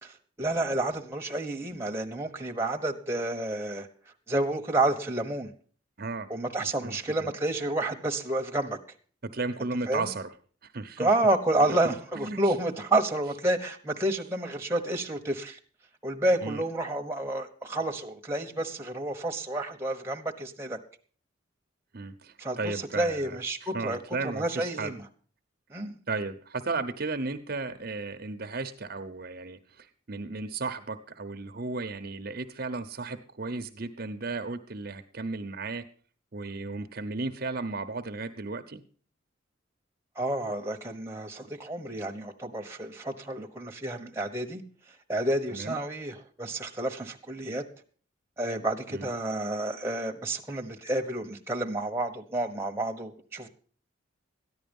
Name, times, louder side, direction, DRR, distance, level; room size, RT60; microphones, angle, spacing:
voice 1, 0.0-3.9 4.3-5.5 6.3-8.8 9.9-10.1 11.0-15.6 16.0-20.8 22.4-24.0 24.2-25.0 25.7-26.0 40.2-44.6 45.1-47.6 48.4-53.5, right 1 dB, 15° right, 2 dB, 1.1 m, -30 dB
voice 2, 6.0-6.3 6.8-7.3 9.3-10.3 10.6-11.1 11.6-11.8 12.2-12.5 16.4-16.6 21.9-24.9 26.1-35.8 36.3-38.8 45.5-45.8 48.9-49.1, right 3 dB, 50° right, 8 dB, 0.8 m, -35 dB
14.0 x 10.5 x 5.3 m, 0.43 s
head